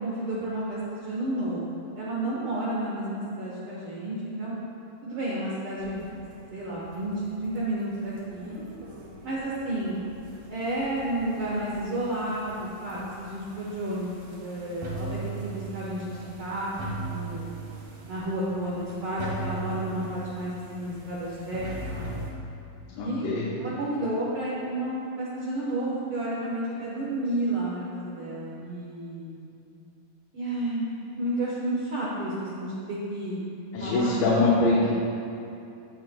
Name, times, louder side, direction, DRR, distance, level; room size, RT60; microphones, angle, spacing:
voice 1, 0.0-1.6 2.0-4.5 5.0-6.1 6.5-8.6 9.2-10.0 10.5-17.7 18.1-22.2 23.0-23.3 23.6-29.3 30.3-33.4 33.8-34.2, right 1 dB, 80° right, -7 dB, 1.2 m, -31 dB
sound 1, 5.8-22.3, right 3 dB, 60° right, 2.7 m, -40 dB
voice 2, 22.9-23.5 33.7-34.9, left 2 dB, 85° left, -6 dB, 2.9 m, -23 dB
16.5 x 7.0 x 2.2 m, 2.7 s
omnidirectional pair, 4.3 m